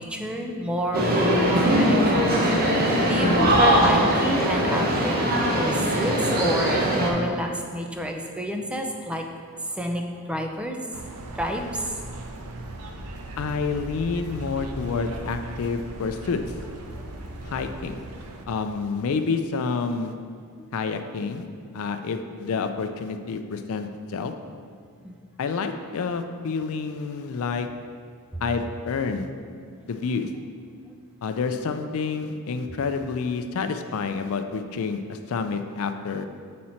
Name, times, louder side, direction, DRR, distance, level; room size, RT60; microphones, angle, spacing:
voice 1, 0.0-2.5 3.1-5.2 5.6-6.1 6.4-9.2 9.8-10.0 10.3-10.8 11.4-11.8 25.0-25.2, equal, 5° right, 2 dB, 0.4 m, -29 dB
sound 1, 0.9-7.1, equal, 40° right, 0.9 m, -21 dB
sound 2, 10.9-18.4, right 1 dB, 85° right, 0.6 m, -38 dB
voice 2, 13.4-16.4 17.4-18.0 18.5-20.1 20.7-21.5 21.7-24.3 25.4-27.7 28.4-29.3 29.9-30.3 31.2-36.3, left 5 dB, 65° left, 7 dB, 0.4 m, -28 dB
7.5 x 4.3 x 4.3 m, 2.1 s
head